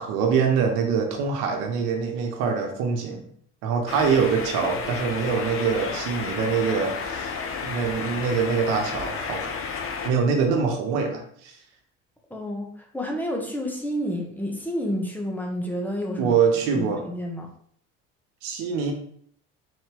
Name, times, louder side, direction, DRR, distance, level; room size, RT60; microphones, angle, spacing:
voice 1, 0.0-3.2 3.6-9.5 10.0-11.6 16.2-17.1 18.4-18.9, right 6 dB, 85° right, 3 dB, 0.9 m, -24 dB
sound 1, 3.9-10.1, left 5 dB, 45° left, 0.7 m, -32 dB
voice 2, 12.3-16.3 16.7-17.5, equal, 5° left, 0 dB, 1.0 m, -30 dB
4.1 x 3.2 x 3.0 m, 0.62 s
cardioid pair, 95°, 31 cm